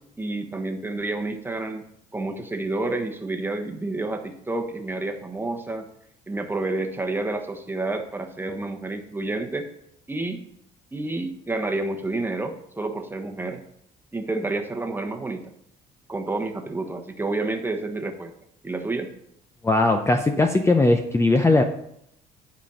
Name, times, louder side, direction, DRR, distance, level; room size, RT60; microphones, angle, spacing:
voice 1, 0.0-1.8 2.1-5.9 6.3-9.7 10.1-10.4 10.9-13.6 14.1-15.4 16.1-18.3 18.6-19.1, right 2 dB, 10° right, 4 dB, 1.2 m, -29 dB
voice 2, 19.6-21.6, left 2 dB, 15° left, 6 dB, 0.7 m, -19 dB
10.5 x 5.2 x 5.6 m, 0.74 s
cardioid pair, 110°, 17 cm